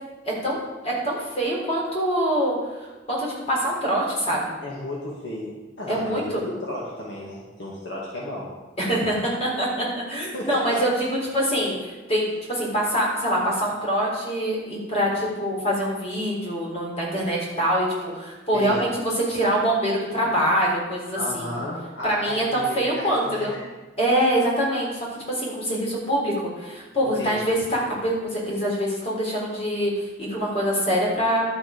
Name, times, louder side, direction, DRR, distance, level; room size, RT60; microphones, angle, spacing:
voice 1, 0.3-4.5 5.9-6.4 8.8-11.7 12.1-17.9 18.1-21.5 22.0-23.5 24.0-29.9 30.2-31.4, equal, 35° left, -4 dB, 3.8 m, -24 dB
voice 2, 4.6-8.5 10.3-10.8 18.5-18.8 21.1-23.6 27.0-27.5, left 1 dB, 65° left, -5 dB, 1.9 m, -33 dB
11.5 x 7.1 x 5.1 m, 1.2 s
head